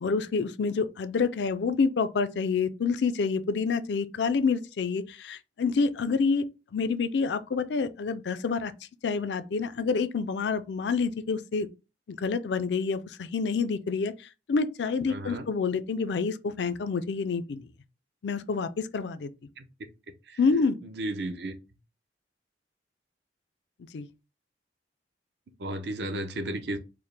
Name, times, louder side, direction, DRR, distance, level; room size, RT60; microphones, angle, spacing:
voice 1, 0.0-6.5 6.7-8.7 9.0-11.7 12.1-17.7 18.2-19.3 20.4-20.8 23.9-24.1, left 4 dB, 80° left, 0.4 m, -28 dB
voice 2, 15.1-15.4 19.6-19.9 20.3-20.4 20.8-21.5 25.6-26.8, right 1 dB, 75° right, 0.6 m, -34 dB
4.6 x 2.1 x 3.3 m
head